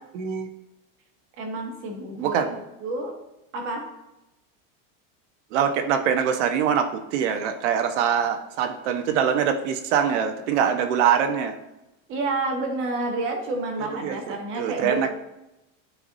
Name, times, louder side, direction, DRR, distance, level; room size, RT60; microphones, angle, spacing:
voice 1, 0.1-0.5 2.2-2.6 5.5-11.6 13.8-15.1, right 8 dB, 65° right, 7 dB, 1.1 m, -24 dB
voice 2, 1.4-2.4 2.8-3.1 3.5-3.9 12.1-15.1, right 2 dB, 30° right, 2 dB, 1.5 m, -29 dB
12.5 x 4.7 x 2.7 m, 0.93 s
supercardioid pair, 175°, 39 cm